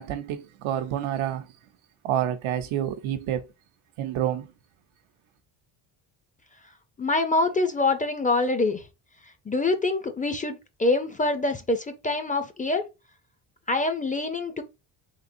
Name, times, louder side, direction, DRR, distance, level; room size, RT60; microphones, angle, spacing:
voice 1, 0.0-1.5 2.0-3.4 4.0-4.5, right 11 dB, 85° right, 0.8 m, -28 dB
voice 2, 7.0-8.8 9.5-12.9 13.7-14.6, left 2 dB, 20° left, 0.4 m, -25 dB
3.7 x 3.6 x 2.6 m
cardioid pair, 125°, 47 cm